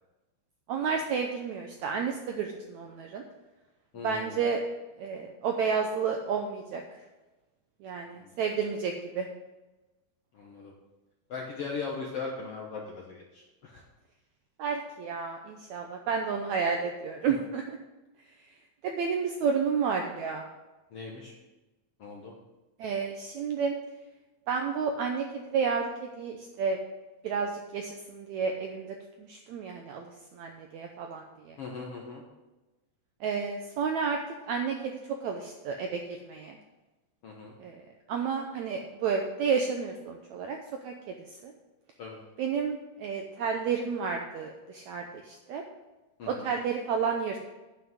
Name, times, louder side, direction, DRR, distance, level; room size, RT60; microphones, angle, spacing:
voice 1, 0.7-3.2 4.0-4.6 5.0-6.8 7.8-9.3 14.6-17.8 18.8-20.4 22.8-23.8 24.5-26.8 27.2-28.9 29.2-31.6 33.2-34.2 34.5-36.6 37.6-40.6 40.8-41.1 41.4-41.5 42.4-45.6 46.2-47.4, right 6 dB, 80° right, 3 dB, 1.7 m, -31 dB
voice 2, 3.9-4.4 8.2-8.3 10.3-10.7 11.3-13.8 20.9-21.3 22.0-22.3 31.6-32.2 37.2-37.5 42.0-42.2 46.2-46.5, left 4 dB, 70° left, -1 dB, 1.4 m, -39 dB
9.8 x 5.8 x 7.9 m, 1.1 s
omnidirectional pair, 4.2 m